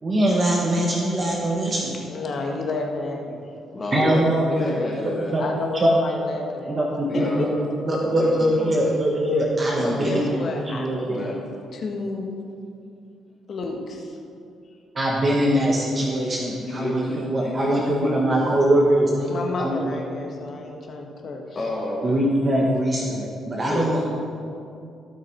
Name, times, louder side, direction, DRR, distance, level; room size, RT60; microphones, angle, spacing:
voice 1, 0.0-2.0 3.9-4.4 5.3-5.4 5.7-5.9 6.7-7.5 7.8-11.2 14.9-19.3 19.6-20.0 22.0-24.1, right 1 dB, 35° right, -2 dB, 1.5 m, -22 dB
voice 2, 2.1-3.4 4.7-5.1 5.4-7.2 9.8-11.4 11.7-12.4 13.5-14.2 19.2-21.5, left 3 dB, 55° left, 1 dB, 1.7 m, -31 dB
voice 3, 3.7-5.3 7.1-7.4 8.0-8.9 9.8-10.3 11.0-11.4 16.6-18.2 21.6-22.2 23.6-24.1, left 1 dB, 35° left, -5 dB, 1.9 m, -30 dB
17.0 x 6.2 x 4.8 m, 2.4 s
cardioid pair, 90°, 0 cm